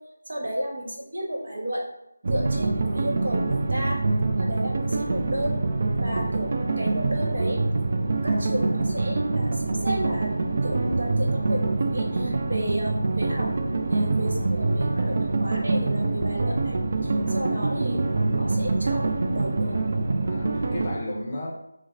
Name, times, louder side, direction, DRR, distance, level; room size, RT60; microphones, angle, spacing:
voice 1, 0.3-1.8 2.3-4.0 4.4-5.6 6.0-6.5 6.8-7.9 8.2-18.0 18.4-19.8, equal, 70° right, -1 dB, 1.1 m, -33 dB
sound 1, 2.2-21.0, right 3 dB, 45° right, 0.3 m, -25 dB
voice 2, 6.0-6.3 12.4-12.7 20.2-21.5, left 1 dB, 25° left, -2 dB, 0.6 m, -34 dB
6.0 x 2.1 x 2.6 m, 0.84 s
figure-of-eight pair, 165°, 0 cm